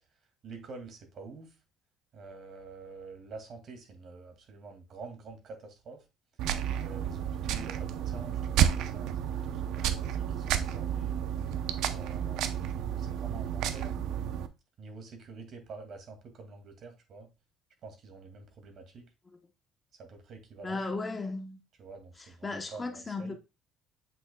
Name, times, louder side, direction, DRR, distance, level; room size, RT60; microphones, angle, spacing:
voice 1, 0.4-1.5 2.1-6.0 6.8-9.8 10.1-11.1 11.9-12.7 13.0-13.9 14.8-17.3 17.8-19.1 20.0-20.8 21.8-23.3, right 4 dB, 50° right, 2.1 m, -47 dB
sound 1, 6.4-14.5, right 9 dB, 75° right, 0.6 m, -31 dB
voice 2, 20.6-21.6 22.2-23.4, left 3 dB, 20° left, 0.8 m, -36 dB
7.8 x 5.8 x 2.2 m
cardioid pair, 130°, 0 cm